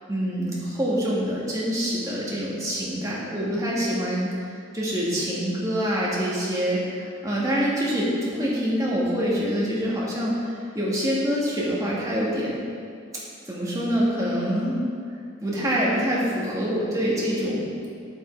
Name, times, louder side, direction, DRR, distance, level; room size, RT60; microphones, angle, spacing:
voice 1, 0.1-4.3 4.7-10.3 10.7-12.6 13.5-14.7 15.4-17.8, equal, 15° right, -6 dB, 1.7 m, -25 dB
9.1 x 5.5 x 4.5 m, 2.3 s
head